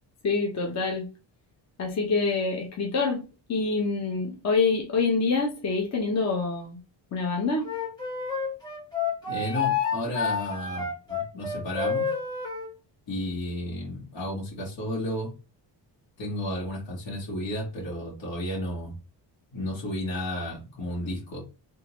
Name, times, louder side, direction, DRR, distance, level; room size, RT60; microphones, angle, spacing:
voice 1, 0.2-1.1 1.8-3.2 3.5-6.8 7.1-7.7, left 4 dB, 35° left, 0.9 m, -26 dB
Wind instrument woodwind instrument, 7.6-12.7, left 6 dB, 10° left, 1.3 m, -29 dB
voice 2, 9.3-12.1 13.1-15.3 16.2-19.0 19.5-21.4, left 1 dB, 80° left, 2.2 m, -32 dB
3.7 x 3.3 x 3.1 m
wide cardioid pair, 175°, 44 cm